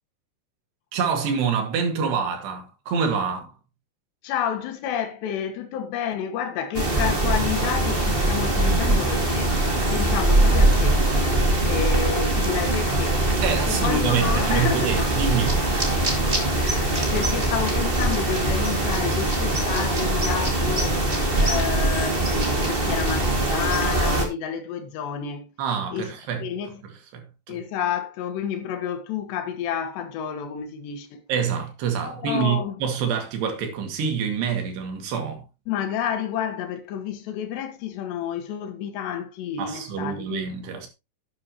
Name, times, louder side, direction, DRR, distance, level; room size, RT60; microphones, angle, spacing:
voice 1, 0.9-3.5 13.4-15.9 25.6-26.5 26.8-27.6 31.3-35.4 39.6-40.9, right 6 dB, 75° right, 4.3 m, -26 dB
voice 2, 4.2-9.6 9.9-11.1 11.6-15.1 16.5-21.0 21.4-25.5 25.9-26.1 26.4-26.8 27.5-31.3 32.1-32.8 35.7-40.4, left 8 dB, 80° left, 3.6 m, -30 dB
sound 1, 6.7-24.3, right 1 dB, 30° right, 1.1 m, -22 dB
11.0 x 9.6 x 3.0 m
omnidirectional pair, 4.9 m